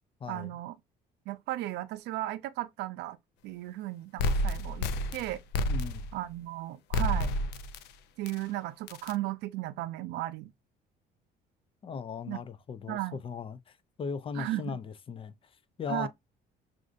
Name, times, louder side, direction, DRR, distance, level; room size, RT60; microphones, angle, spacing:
voice 1, 0.3-0.8 1.3-3.2 3.4-4.9 5.1-5.4 6.1-7.3 8.2-10.5 12.3-12.4 12.9-13.2 14.3-14.8 15.9-16.1, right 16 dB, 80° right, 0.4 m, -35 dB
sound 1, 4.2-6.3 6.9-7.9 8.3-8.4 8.9-9.1, left 1 dB, 85° left, 0.5 m, -30 dB
voice 2, 5.7-6.1 11.8-15.3 15.8-16.1, left 6 dB, 30° left, 0.4 m, -38 dB
6.1 x 2.5 x 2.5 m
cardioid pair, 110°, 17 cm